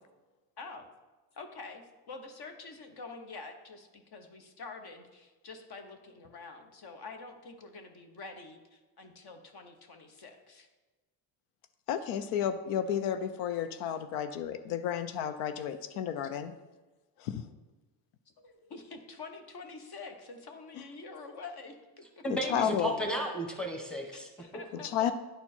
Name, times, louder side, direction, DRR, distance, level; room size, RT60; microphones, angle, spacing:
voice 1, 0.6-0.9 1.3-10.7 18.4-22.2 24.1-24.9, left 3 dB, 50° left, 6 dB, 1.1 m, -47 dB
voice 2, 11.9-16.5 17.2-17.5 20.8-20.9 22.3-22.9 24.7-25.1, left 9 dB, 90° left, 11 dB, 0.6 m, -32 dB
voice 3, 22.2-24.3 24.7-24.8, equal, ahead, 2 dB, 1.2 m, -34 dB
10.0 x 4.4 x 4.3 m, 1.2 s
cardioid pair, 95°, 49 cm